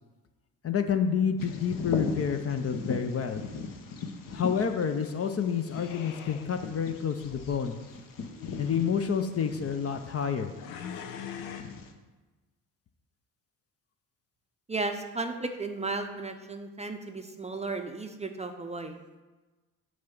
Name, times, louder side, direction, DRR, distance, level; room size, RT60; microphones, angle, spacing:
voice 1, 0.6-3.4 4.3-7.8 8.6-10.5, left 7 dB, 35° left, 7 dB, 0.6 m, -29 dB
Bird vocalization bird call bird song, 1.4-11.9, left 4 dB, 50° left, 1.0 m, -40 dB
sound 1, 1.5-2.3 5.7-6.5 7.2-7.6 8.3-8.9 10.6-11.6, left 8 dB, 85° left, 0.7 m, -43 dB
voice 2, 14.7-19.0, right 3 dB, 15° right, 5 dB, 0.6 m, -34 dB
6.2 x 3.9 x 6.0 m, 1.2 s
hypercardioid pair, 55°, 41 cm